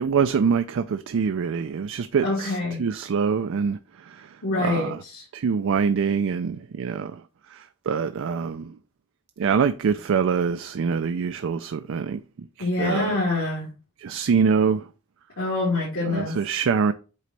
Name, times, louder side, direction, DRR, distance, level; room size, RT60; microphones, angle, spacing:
voice 1, 0.0-3.8 4.0-4.3 4.6-5.0 5.3-7.2 7.5-8.7 9.4-12.2 12.6-13.1 14.0-14.8 16.1-16.9, right 6 dB, 60° right, 0.4 m, -24 dB
voice 2, 2.2-2.8 4.4-5.2 12.6-13.7 15.4-16.4, left 2 dB, 80° left, 3.5 m, -25 dB
8.3 x 3.9 x 3.2 m
head